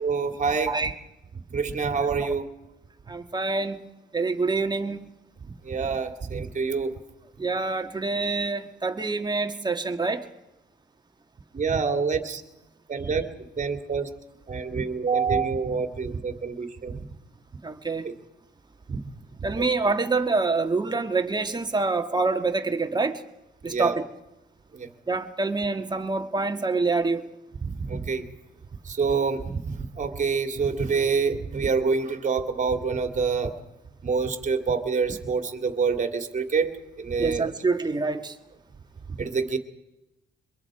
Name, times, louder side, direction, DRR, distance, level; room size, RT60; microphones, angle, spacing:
voice 1, 0.0-0.7 1.5-2.4 5.5-6.9 11.5-12.4 12.9-13.3 13.6-14.1 14.5-17.0 18.0-18.1 18.9-19.0 19.5-19.7 23.6-24.0 24.7-24.9 27.6-28.2 28.8-33.5 34.0-37.5 39.2-39.6, right 5 dB, 40° right, 7 dB, 2.6 m, -26 dB
voice 2, 3.1-3.8 4.1-5.0 7.4-10.2 17.6-18.1 19.4-23.2 23.6-24.0 25.1-27.3 37.2-38.4, right 3 dB, 20° right, 5 dB, 1.8 m, -26 dB
24.0 x 22.5 x 5.0 m, 0.96 s
cardioid pair, 90°, 20 cm